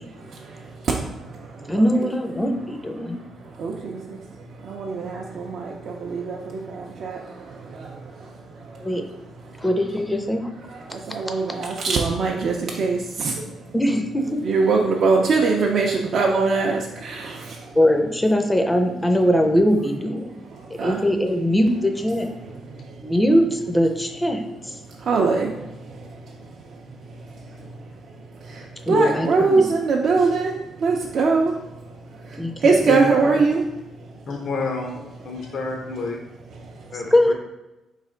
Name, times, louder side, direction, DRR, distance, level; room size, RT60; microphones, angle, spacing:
voice 1, 0.0-2.0 3.0-9.0 9.4-9.6 10.7-13.7 14.3-17.8 20.4-21.0 22.4-23.1 24.8-32.0 32.6-34.3 35.3-35.5 36.6-36.9, right 4 dB, 60° right, 0 dB, 0.5 m, -24 dB
voice 2, 1.7-3.2 8.8-9.1 9.6-10.5 13.7-14.4 17.7-20.3 20.8-22.3 23.0-24.8 28.9-29.7 32.4-33.3 37.1-37.3, equal, 10° left, 4 dB, 0.5 m, -21 dB
voice 3, 34.3-35.0 35.2-36.2 36.9-37.3, left 3 dB, 65° left, 1 dB, 0.6 m, -29 dB
4.3 x 3.2 x 3.7 m, 0.97 s
cardioid pair, 90°, 0 cm